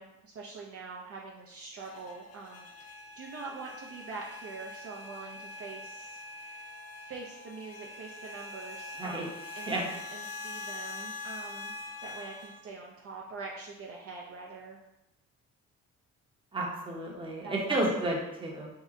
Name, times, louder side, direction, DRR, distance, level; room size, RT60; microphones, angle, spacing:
voice 1, 0.0-9.2 9.6-9.7 10.1-11.7 12.0-14.8 17.4-18.1, right 4 dB, 50° right, -2 dB, 0.5 m, -44 dB
sound 1, 1.8-12.6, left 2 dB, 50° left, 0.4 m, -44 dB
voice 2, 16.5-18.7, right 1 dB, 15° right, -2 dB, 0.7 m, -31 dB
2.8 x 2.1 x 3.6 m, 0.92 s
cardioid pair, 90°, 30 cm